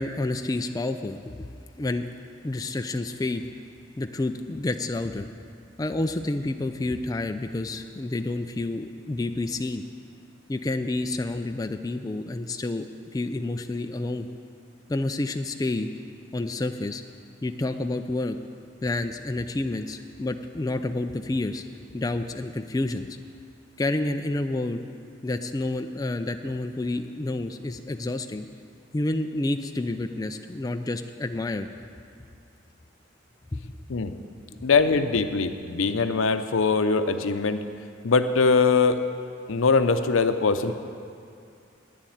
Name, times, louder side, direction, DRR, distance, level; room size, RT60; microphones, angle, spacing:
voice 1, 0.0-1.5 1.8-2.1 2.4-3.5 4.0-5.3 5.8-9.8 10.5-14.3 14.9-15.9 16.3-17.0 17.4-18.4 18.8-21.6 21.9-23.1 23.8-24.8 25.2-28.5 28.9-31.7 33.5-33.6, left 2 dB, 20° left, 7 dB, 0.3 m, -29 dB
voice 2, 34.6-37.6 38.0-39.0 39.5-40.7, left 4 dB, 90° left, 9 dB, 0.6 m, -22 dB
10.0 x 7.3 x 9.2 m, 2.3 s
head